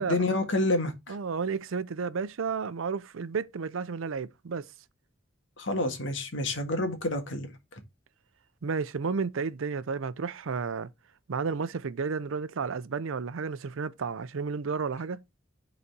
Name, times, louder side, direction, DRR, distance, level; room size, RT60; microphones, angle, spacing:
voice 1, 0.0-1.2 5.6-7.5, left 2 dB, 70° left, 1.7 m, -28 dB
voice 2, 1.1-4.7 8.6-10.9 11.3-15.2, right 5 dB, 85° right, 0.5 m, -32 dB
5.5 x 4.1 x 5.9 m
head